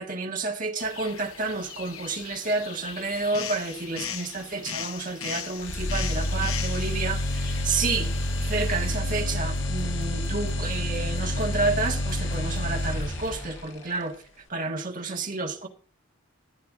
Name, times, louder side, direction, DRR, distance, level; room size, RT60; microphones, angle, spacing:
voice 1, 0.0-8.1 8.4-15.7, right 3 dB, 40° right, 1.5 m, -30 dB
sound 1, 0.8-9.0, left 8 dB, 85° left, 1.0 m, -39 dB
sound 2, 5.6-13.6, left 1 dB, 60° left, 1.3 m, -28 dB
sound 3, 8.1-14.1, left 1 dB, 15° left, 6.5 m, -44 dB
14.5 x 8.9 x 3.7 m
head